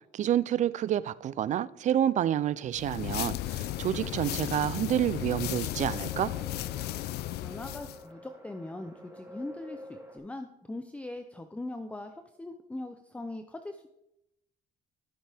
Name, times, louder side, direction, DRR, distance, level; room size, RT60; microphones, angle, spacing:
voice 1, 0.1-6.3, right 11 dB, 45° right, 0.4 m, -28 dB
sound 1, 2.7-8.0, left 14 dB, 75° left, 0.4 m, -35 dB
sound 2, 3.5-10.2, equal, 15° right, 2.3 m, -50 dB
voice 2, 7.4-13.9, left 2 dB, 10° left, 0.5 m, -41 dB
12.5 x 7.2 x 3.4 m
cardioid pair, 110°, 17 cm